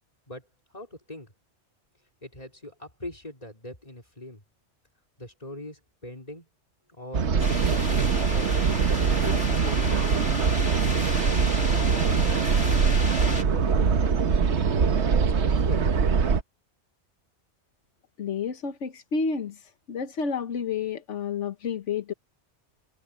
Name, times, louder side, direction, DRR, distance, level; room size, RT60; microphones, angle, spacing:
voice 1, 0.7-1.3 2.2-4.4 5.2-6.5 6.9-10.2 10.8-12.8 13.5-14.4 14.7-15.9, left 1 dB, 35° left, 4.7 m, -41 dB
sound 1, 7.1-16.4, right 6 dB, 75° right, 1.4 m, -23 dB
sound 2, 7.4-13.4, left 2 dB, 60° left, 3.9 m, -34 dB
voice 2, 18.2-19.6 19.9-22.1, left 5 dB, 90° left, 1.4 m, -30 dB
omnidirectional pair, 1.2 m